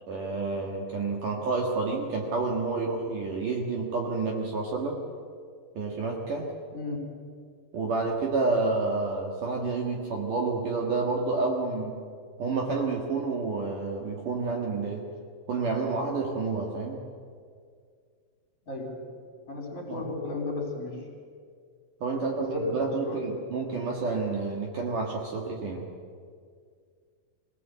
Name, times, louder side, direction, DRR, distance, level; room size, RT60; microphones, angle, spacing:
voice 1, 0.1-5.0 5.7-6.5 7.7-12.1 12.4-15.1 15.5-17.0 19.9-20.0 22.0-25.8, right 3 dB, 55° right, 0 dB, 2.9 m, -29 dB
voice 2, 18.7-19.0 19.5-21.1 22.1-23.2, left 2 dB, 35° left, 0 dB, 4.3 m, -34 dB
23.0 x 17.5 x 8.3 m, 2.1 s
omnidirectional pair, 5.2 m